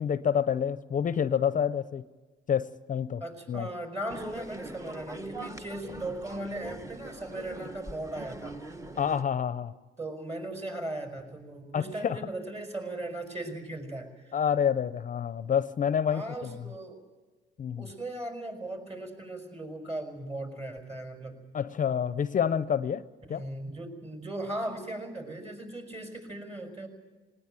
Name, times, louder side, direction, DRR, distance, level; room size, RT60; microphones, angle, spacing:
voice 1, 0.0-2.0 2.5-3.2 3.5-3.7 9.0-9.7 11.7-12.2 14.3-16.5 17.6-17.9 21.5-23.0 23.3-23.4, left 8 dB, 40° left, 15 dB, 0.6 m, -28 dB
voice 2, 3.2-8.5 10.0-14.4 16.1-17.0 17.8-21.4 23.3-26.9, right 1 dB, 30° right, 4 dB, 5.5 m, -38 dB
sound 1, 4.1-9.2, right 1 dB, 15° right, 1.0 m, -42 dB
19.5 x 19.0 x 9.0 m, 1.3 s
cardioid pair, 90°, 20 cm